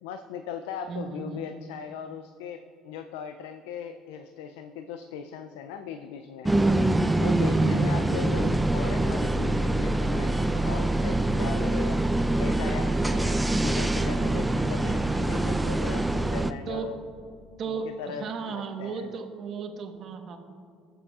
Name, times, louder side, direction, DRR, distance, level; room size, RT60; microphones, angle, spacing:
voice 1, 0.0-6.5 7.2-12.0 12.4-17.0 17.6-19.1, left 7 dB, 90° left, 8 dB, 0.3 m, -39 dB
voice 2, 0.9-1.4 7.6-8.2 16.7-16.9 17.6-20.4, right 5 dB, 55° right, 5 dB, 1.1 m, -34 dB
sound 1, 6.5-16.5, right 2 dB, 10° right, 0.4 m, -24 dB
17.0 x 7.0 x 2.4 m, 2.2 s
supercardioid pair, 85°, 0 cm